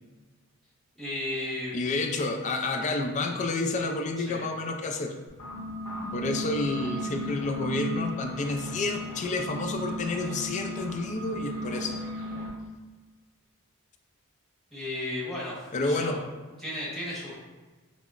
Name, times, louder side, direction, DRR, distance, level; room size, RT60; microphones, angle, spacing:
voice 1, 1.0-1.8 4.2-4.5 14.7-16.2 16.6-17.4, left 1 dB, ahead, -8 dB, 1.2 m, -34 dB
voice 2, 1.7-5.2 6.1-12.0 15.7-16.2, left 3 dB, 35° left, 4 dB, 0.3 m, -30 dB
sound 1, 5.3-12.5, equal, 65° left, 0.8 m, -35 dB
5.6 x 2.0 x 2.4 m, 1.3 s
head